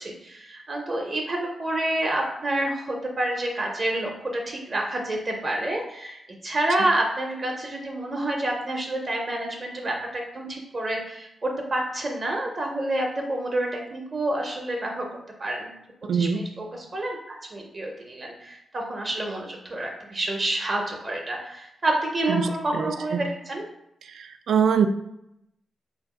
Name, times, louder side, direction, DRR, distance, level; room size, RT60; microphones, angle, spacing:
voice 1, 0.0-15.0 15.4-15.7 16.1-23.6, right 1 dB, 30° right, 0 dB, 0.6 m, -28 dB
voice 2, 16.0-16.4 22.3-22.5 22.7-23.2 24.1-24.9, right 7 dB, 75° right, 8 dB, 0.4 m, -23 dB
3.4 x 2.8 x 4.6 m, 0.80 s
wide cardioid pair, 170°, 0 cm